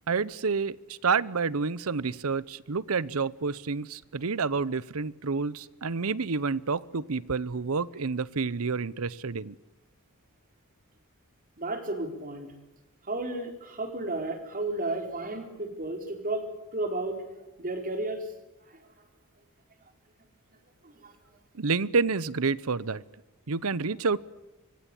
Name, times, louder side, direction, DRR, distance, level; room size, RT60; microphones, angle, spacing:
voice 1, 0.1-9.5 21.6-23.0 23.5-24.2, right 4 dB, 80° right, 20 dB, 0.8 m, -29 dB
voice 2, 11.6-12.5 13.1-16.4 16.7-17.2 17.6-18.2 20.8-21.1, right 2 dB, 40° right, 5 dB, 4.2 m, -33 dB
25.0 x 23.5 x 8.5 m, 0.99 s
head